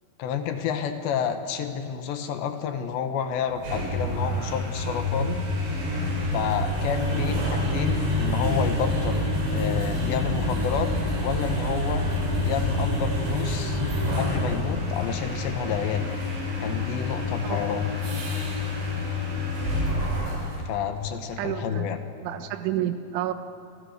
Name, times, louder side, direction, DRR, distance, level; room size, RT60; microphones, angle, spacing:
voice 1, 0.2-5.5 6.3-10.9 11.2-12.1 12.4-13.8 14.2-16.1 16.6-17.8 20.7-22.0, left 7 dB, 75° left, 7 dB, 3.4 m, -30 dB
sound 1, 3.5-20.6, left 1 dB, 70° right, 7.7 m, -27 dB
voice 2, 17.4-17.8 21.4-21.9 22.2-23.3, right 11 dB, 90° right, 8 dB, 3.7 m, -30 dB
29.5 x 26.5 x 6.6 m, 2.4 s
omnidirectional pair, 5.3 m